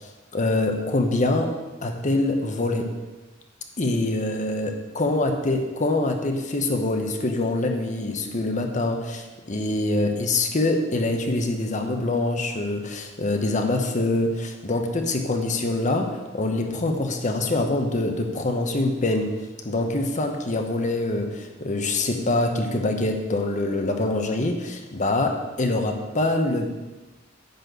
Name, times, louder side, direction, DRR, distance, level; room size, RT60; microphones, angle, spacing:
voice 1, 0.3-1.5 1.8-2.9 3.8-19.3 19.6-26.7, left 2 dB, 40° left, 4 dB, 1.0 m, -24 dB
10.5 x 4.3 x 7.7 m, 1.2 s
head